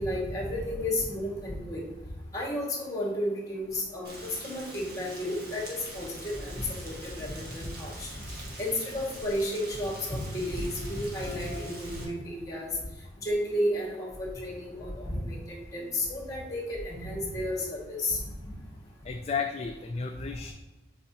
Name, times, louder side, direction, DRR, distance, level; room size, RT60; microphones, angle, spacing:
voice 1, 0.0-1.8 2.3-4.1 4.4-8.1 8.6-12.7 13.2-15.4 15.7-18.2, left 1 dB, 20° left, -3 dB, 2.0 m, -32 dB
Rain, 4.0-12.0, right 1 dB, 55° right, 1.6 m, -45 dB
voice 2, 11.1-11.7 12.0-12.1 19.0-20.5, left 5 dB, 35° left, 4 dB, 0.3 m, -34 dB
7.3 x 4.8 x 2.9 m, 1.1 s
head